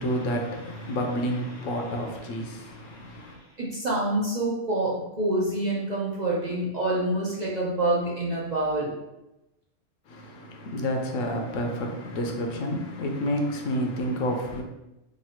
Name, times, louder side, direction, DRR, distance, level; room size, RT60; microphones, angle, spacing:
voice 1, 0.0-3.4 10.1-14.6, equal, 75° left, 1.0 m, -29 dB
voice 2, 2.8-8.9, right 1 dB, 45° right, 0.6 m, -27 dB
3.1 x 2.6 x 4.3 m
omnidirectional pair, 1.3 m